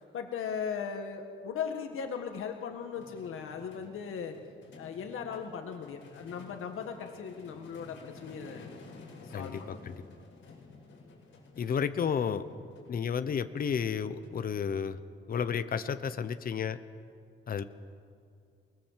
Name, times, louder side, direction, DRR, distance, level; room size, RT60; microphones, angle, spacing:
voice 1, 0.1-4.4 4.8-8.7 9.2-9.8, left 7 dB, 80° left, 4 dB, 1.8 m, -38 dB
sound 1, 2.8-14.7, left 3 dB, 65° left, 7.1 m, -52 dB
voice 2, 9.3-10.0 11.6-12.4 12.9-15.0 15.3-16.8 17.5-17.6, left 7 dB, 45° left, 11 dB, 1.0 m, -32 dB
28.5 x 20.5 x 7.6 m, 2.3 s
wide cardioid pair, 175°, 21 cm